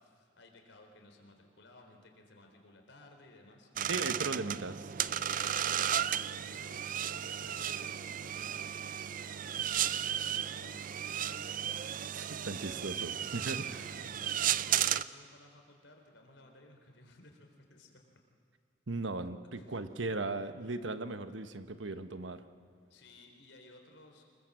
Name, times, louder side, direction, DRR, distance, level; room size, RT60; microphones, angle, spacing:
voice 1, 0.0-3.9 5.1-8.8 9.2-11.7 13.6-18.0 19.5-20.0 22.9-24.2, left 2 dB, 75° left, 3 dB, 4.0 m, -58 dB
sound 1, 3.8-15.0, right 10 dB, 45° right, 0.5 m, -34 dB
voice 2, 3.9-4.9 12.1-13.9 18.9-22.4, right 3 dB, 85° right, 10 dB, 1.2 m, -37 dB
25.5 x 21.5 x 7.7 m, 2.4 s
head